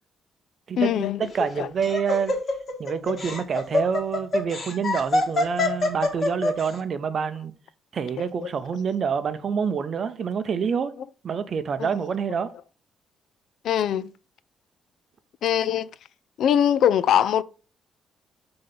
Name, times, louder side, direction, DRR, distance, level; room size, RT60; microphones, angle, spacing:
voice 1, 0.8-1.3 1.6-1.7 8.2-8.3 11.8-11.9 13.6-14.1 15.4-15.9 16.4-17.4, left 9 dB, 60° left, 0.3 m, -22 dB
Laughter, 1.2-6.7, left 2 dB, 35° left, 1.4 m, -25 dB
voice 2, 1.3-2.3 2.8-7.5 7.9-10.9 11.2-12.5, right 6 dB, 40° right, 0.6 m, -27 dB
5.9 x 3.8 x 5.3 m
cardioid pair, 170°, 0 cm